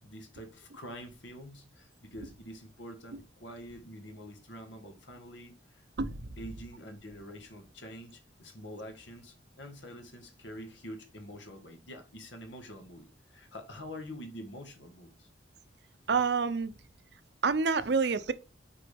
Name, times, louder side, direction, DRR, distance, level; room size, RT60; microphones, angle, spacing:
voice 1, 0.0-5.8 6.4-15.3, equal, 80° left, 1.7 m, -46 dB
voice 2, 16.1-16.7 17.4-18.3, right 5 dB, 65° right, 0.6 m, -27 dB
6.0 x 4.9 x 3.5 m
head